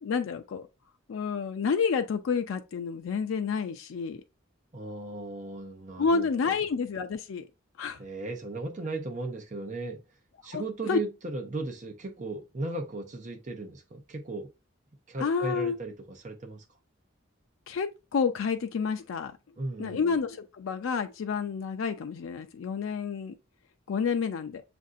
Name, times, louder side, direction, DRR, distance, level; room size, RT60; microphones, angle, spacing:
voice 1, 0.0-0.7 1.1-4.2 6.0-7.5 7.8-8.0 10.5-11.0 15.2-15.8 17.7-19.3 19.8-23.3 23.9-24.6, left 5 dB, 85° left, 0.4 m, -29 dB
voice 2, 4.7-6.5 8.0-10.0 10.4-14.5 15.1-16.6 19.6-20.2, right 2 dB, 40° right, 0.6 m, -36 dB
6.4 x 2.6 x 2.5 m
head